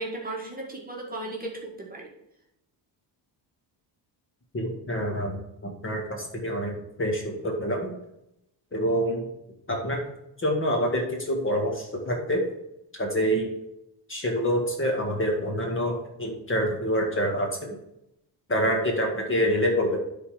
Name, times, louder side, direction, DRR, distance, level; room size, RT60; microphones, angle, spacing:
voice 1, 0.0-2.1, right 2 dB, 20° right, -2 dB, 1.9 m, -35 dB
voice 2, 4.5-5.4 5.8-6.0 6.4-7.9 8.7-9.2 9.7-10.0 10.4-11.7 12.1-12.4 13.0-13.5 14.1-17.7 18.5-20.0, equal, 25° left, 1 dB, 2.0 m, -26 dB
9.6 x 4.3 x 5.0 m, 0.83 s
cardioid pair, 100°, 46 cm